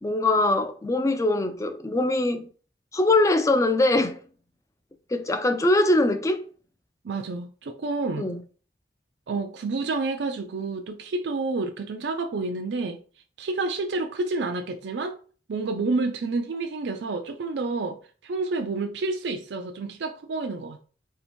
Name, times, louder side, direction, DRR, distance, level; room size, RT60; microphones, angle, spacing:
voice 1, 0.0-2.5 2.9-4.2 5.1-6.4 8.2-8.4, left 2 dB, 20° left, 0.4 m, -22 dB
voice 2, 7.0-8.3 9.3-13.0 13.4-15.2 15.5-20.8, right 3 dB, 80° right, 0.4 m, -29 dB
4.2 x 2.8 x 4.4 m
head